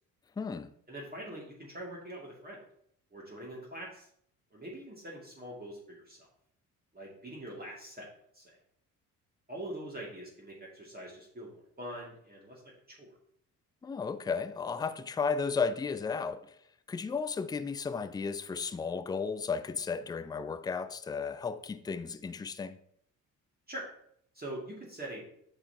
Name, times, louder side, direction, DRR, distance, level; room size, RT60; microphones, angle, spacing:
voice 1, 0.4-0.7 13.8-16.5 16.9-22.8, left 5 dB, 10° left, 0.3 m, -34 dB
voice 2, 0.9-2.6 3.1-4.1 4.5-6.3 6.9-8.1 8.3-8.6 9.5-12.6 12.9-13.1 23.7-23.9 24.3-25.3, right 1 dB, 20° right, 2.4 m, -43 dB
7.8 x 5.8 x 2.9 m
hypercardioid pair, 50°, 43 cm